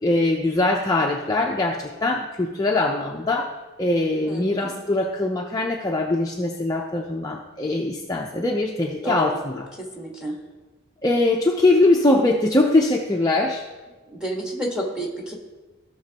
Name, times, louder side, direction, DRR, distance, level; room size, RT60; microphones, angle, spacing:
voice 1, 0.0-3.5 3.8-9.7 11.0-13.6, left 2 dB, 15° left, 0 dB, 0.5 m, -22 dB
voice 2, 4.2-4.8 9.0-9.4 9.8-10.3 14.1-15.3, right 1 dB, 5° right, -1 dB, 1.5 m, -30 dB
16.0 x 6.0 x 2.9 m, 1.2 s
head